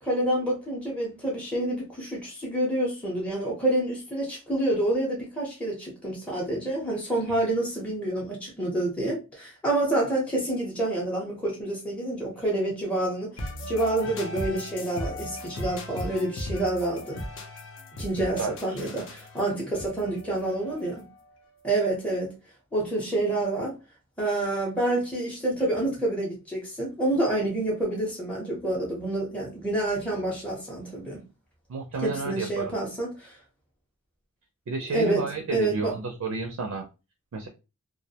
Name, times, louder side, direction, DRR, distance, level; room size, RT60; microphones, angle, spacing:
voice 1, 0.0-17.2 18.0-21.1 21.6-22.3 22.7-23.7 24.2-31.2 32.0-33.3 34.9-35.2 35.5-35.9, right 1 dB, 5° left, 0.6 m, -28 dB
sound 1, 13.4-21.2, left 1 dB, 60° left, 0.5 m, -38 dB
voice 2, 31.7-32.7 34.7-36.8 37.3-37.5, right 4 dB, 70° right, 0.4 m, -31 dB
2.3 x 2.0 x 2.7 m
head